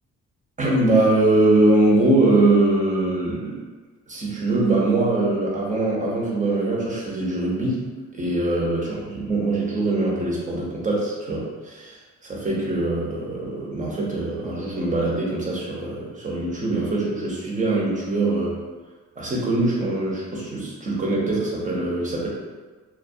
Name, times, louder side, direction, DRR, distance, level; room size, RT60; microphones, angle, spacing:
voice 1, 0.6-3.6 4.1-18.6 19.2-22.3, right 2 dB, 25° right, -5 dB, 0.7 m, -22 dB
2.3 x 2.2 x 2.6 m, 1.4 s
cardioid pair, 90°, 30 cm